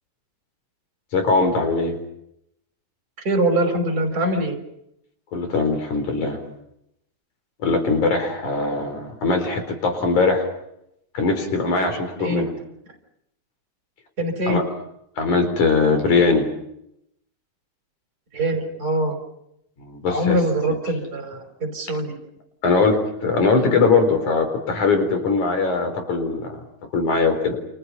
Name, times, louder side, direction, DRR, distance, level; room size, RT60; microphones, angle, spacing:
voice 1, 1.1-1.9 5.3-6.4 7.6-10.5 11.1-12.5 14.5-14.6 15.2-16.5 19.8-20.4 22.6-26.6 26.9-27.6, left 4 dB, 85° left, 7 dB, 5.6 m, -21 dB
voice 2, 3.2-4.6 12.2-12.5 14.2-14.6 18.3-19.2 20.1-22.1, right 1 dB, 30° right, 4 dB, 5.8 m, -23 dB
29.5 x 28.0 x 5.7 m, 0.78 s
omnidirectional pair, 3.3 m